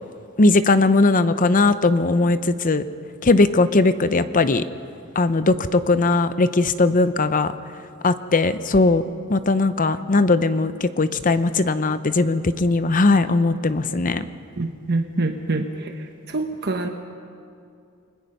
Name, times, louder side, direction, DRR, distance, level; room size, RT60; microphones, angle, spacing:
voice 1, 0.4-2.8 3.2-4.6 5.2-7.5 8.0-9.0 9.3-14.2, left 3 dB, 40° left, 12 dB, 0.7 m, -19 dB
voice 2, 14.6-15.6 16.3-16.9, right 2 dB, 50° right, 4 dB, 1.1 m, -24 dB
30.0 x 21.0 x 5.5 m, 2.4 s
head